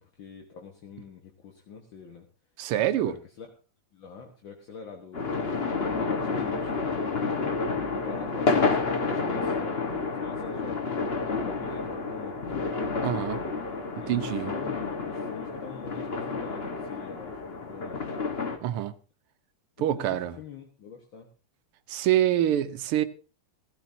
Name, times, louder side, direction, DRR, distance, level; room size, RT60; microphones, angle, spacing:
voice 1, 0.0-2.3 2.8-3.5 3.9-5.7 5.9-7.6 8.0-12.7 14.0-18.3 19.9-20.1 20.4-21.3, left 6 dB, 65° left, 2.1 m, -45 dB
voice 2, 2.6-3.1 13.0-13.4 14.1-14.5 18.6-18.9 19.8-20.3 21.9-23.0, right 12 dB, 80° right, 1.7 m, -25 dB
sound 1, 5.1-18.6, left 4 dB, 35° left, 1.3 m, -30 dB
16.0 x 15.5 x 2.7 m
omnidirectional pair, 2.4 m